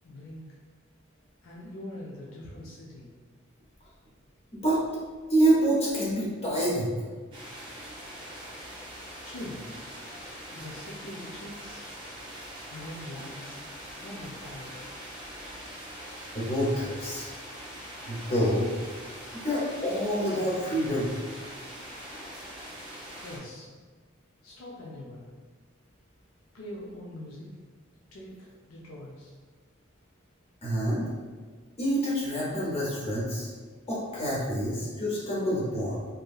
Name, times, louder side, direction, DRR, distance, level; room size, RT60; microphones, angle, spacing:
voice 1, 0.0-0.6 1.4-3.1 9.2-9.7 10.5-11.9 12.7-13.7 14.0-14.9 23.2-23.7 24.4-25.3 26.5-27.5 28.1-29.3, left 1 dB, 80° left, -5 dB, 0.5 m, -43 dB
voice 2, 5.3-6.9 16.3-17.3 18.1-18.7 19.4-21.1 30.6-31.1 31.8-33.5 33.9-36.0, right 1 dB, 30° left, -6 dB, 0.7 m, -27 dB
sound 1, 7.3-23.4, equal, 25° right, 0.6 m, -43 dB
2.8 x 2.6 x 2.4 m, 1.4 s
head